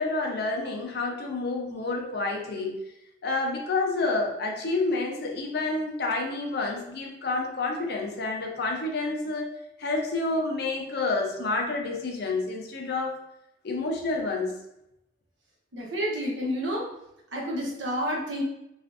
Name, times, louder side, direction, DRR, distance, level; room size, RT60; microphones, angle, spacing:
voice 1, 0.0-2.8 3.2-9.5 9.8-13.2 13.6-14.6, left 3 dB, 60° left, 1 dB, 0.6 m, -29 dB
voice 2, 15.7-16.8 17.3-18.4, equal, 80° right, -3 dB, 0.9 m, -29 dB
3.3 x 2.5 x 2.5 m, 0.82 s
head